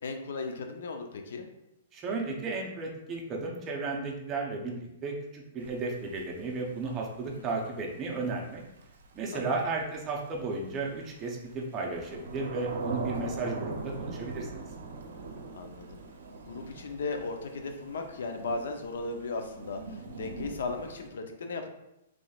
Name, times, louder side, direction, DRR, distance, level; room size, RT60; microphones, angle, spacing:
voice 1, 0.0-1.5 7.3-7.5 9.3-9.6 15.5-16.0 16.4-21.7, left 3 dB, 75° left, 5 dB, 0.5 m, -36 dB
voice 2, 1.9-8.6 9.1-14.6, right 3 dB, 25° right, 0 dB, 0.6 m, -34 dB
Thunder / Rain, 5.6-21.1, right 3 dB, 80° right, 0.6 m, -41 dB
3.9 x 3.1 x 2.3 m, 0.87 s
hypercardioid pair, 150°, 0 cm